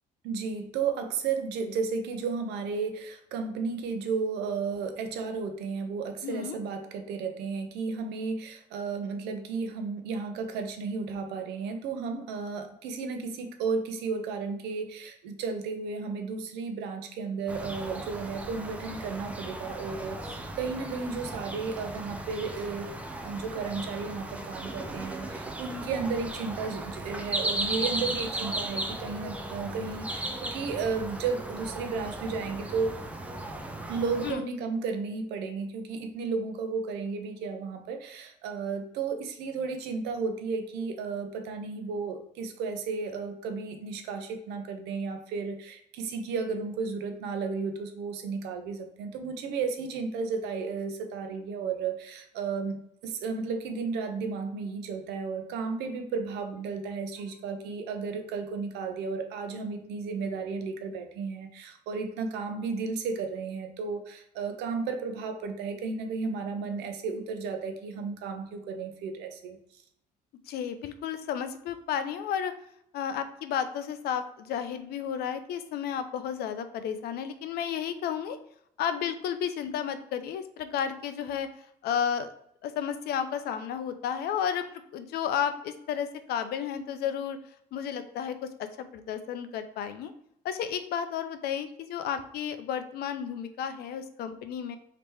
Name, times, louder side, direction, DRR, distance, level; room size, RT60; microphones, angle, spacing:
voice 1, 0.2-22.9 23.2-32.9 33.9-52.8 53.0-69.8, right 5 dB, 85° right, 6 dB, 0.6 m, -33 dB
voice 2, 6.2-6.6 34.2-34.4 70.5-72.5 72.9-78.4 78.8-81.5 81.8-82.3 82.6-87.4 87.7-88.4 88.8-90.1 90.4-94.8, left 8 dB, 70° left, 10 dB, 0.5 m, -32 dB
sound 1, 17.5-34.3, right 1 dB, 10° right, 0.4 m, -36 dB
3.4 x 2.9 x 3.1 m, 0.72 s
cardioid pair, 110°, 17 cm